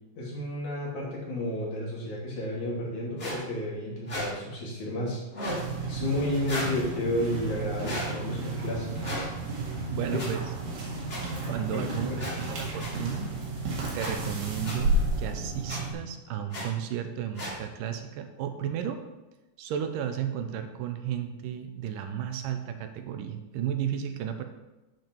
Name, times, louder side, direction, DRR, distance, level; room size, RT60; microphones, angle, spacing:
voice 1, 0.2-5.2 5.9-9.1 10.0-10.1 11.7-12.3, left 1 dB, 60° left, -5 dB, 4.1 m, -32 dB
sound 1, 3.2-3.4 4.1-4.3 5.3-5.6 6.4-6.7 7.8-8.1 9.0-9.2 10.2-10.3 11.1-11.2 12.2-12.3 12.8-12.9 14.0-14.1 14.6-14.7 15.7-15.8 16.5-16.6 17.3-17.5, equal, 20° left, 2.3 m, -34 dB
sound 2, 5.5-15.9, right 2 dB, 65° right, 3.4 m, -32 dB
voice 2, 9.9-10.4 11.5-12.1 12.5-13.4 13.9-19.0 19.6-24.4, right 9 dB, 85° right, 7 dB, 2.4 m, -33 dB
9.4 x 7.7 x 4.6 m, 1.0 s
omnidirectional pair, 3.9 m